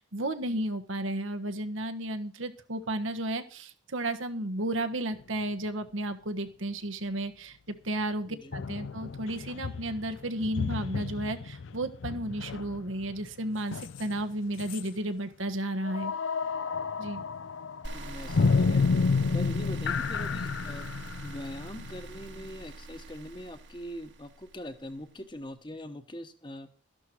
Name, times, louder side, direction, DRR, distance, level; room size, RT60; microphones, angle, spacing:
voice 1, 0.0-7.6 7.8-16.1 17.0-17.2, right 1 dB, 85° right, 7 dB, 1.4 m, -33 dB
sound 1, 5.2-5.3 8.5-14.3 14.6-14.9 15.8-22.5, left 4 dB, 75° left, 0.5 m, -31 dB
sound 2, 17.8-25.0, right 2 dB, 65° right, 1.7 m, -43 dB
voice 2, 17.9-18.9 19.3-20.9 21.2-26.7, equal, 25° left, 9 dB, 1.1 m, -42 dB
13.0 x 11.5 x 4.6 m, 0.39 s
head